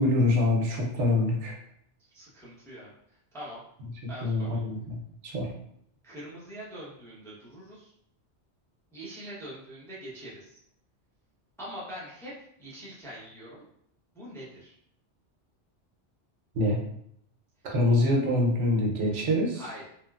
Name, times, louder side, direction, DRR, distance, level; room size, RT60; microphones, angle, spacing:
voice 1, 0.0-1.5 4.2-5.0 5.2-5.5 16.5-16.8 17.6-19.6, left 1 dB, 80° right, 0 dB, 1.0 m, -25 dB
voice 2, 2.1-3.6 4.1-4.6 6.0-7.9 8.9-10.6 11.6-12.3 12.6-13.6 14.1-14.7 19.5-20.0, equal, 5° left, -7 dB, 0.5 m, -43 dB
3.0 x 2.3 x 2.3 m, 0.71 s
omnidirectional pair, 1.2 m